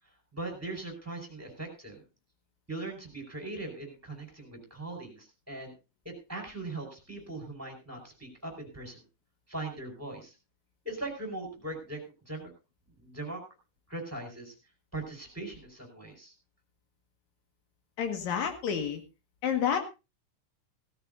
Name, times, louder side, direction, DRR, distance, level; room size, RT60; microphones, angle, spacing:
voice 1, 0.3-2.0 2.7-5.7 6.0-9.0 9.5-10.3 10.8-12.0 12.3-12.5 13.0-13.4 13.9-14.5 14.9-16.3, right 2 dB, 5° right, 3 dB, 4.7 m, -40 dB
voice 2, 18.0-19.0 19.4-19.8, left 8 dB, 65° left, 6 dB, 3.0 m, -29 dB
17.5 x 14.0 x 2.6 m, 0.28 s
omnidirectional pair, 3.7 m